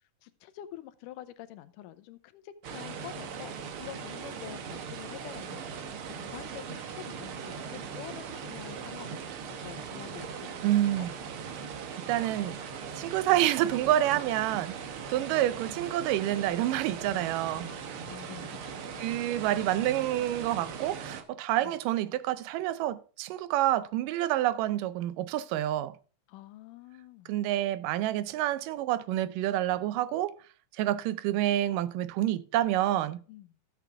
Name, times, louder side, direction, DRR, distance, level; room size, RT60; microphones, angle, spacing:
voice 1, 0.2-3.5 3.8-5.6 6.2-9.2 9.6-11.1 17.7-19.4 21.6-21.8 26.3-27.3 33.3-33.6, left 13 dB, 85° left, 2.2 m, -47 dB
sound 1, 2.6-21.2, right 6 dB, 70° right, 1.3 m, -40 dB
voice 2, 10.6-11.1 11.9-12.6 13.0-14.8 15.1-17.7 19.0-26.0 27.3-30.4 30.8-33.2, right 13 dB, 85° right, 2.2 m, -28 dB
13.0 x 7.6 x 3.5 m
omnidirectional pair, 3.7 m